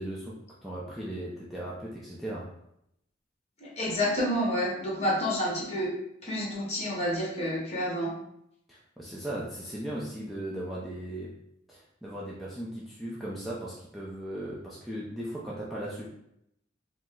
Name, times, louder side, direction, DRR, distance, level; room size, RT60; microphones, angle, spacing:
voice 1, 0.0-2.5 8.7-11.4 11.7-16.1, right 1 dB, ahead, -7 dB, 0.5 m, -37 dB
voice 2, 3.6-5.9 6.2-8.1, equal, 35° left, -4 dB, 1.4 m, -29 dB
4.9 x 2.1 x 3.7 m, 0.78 s
head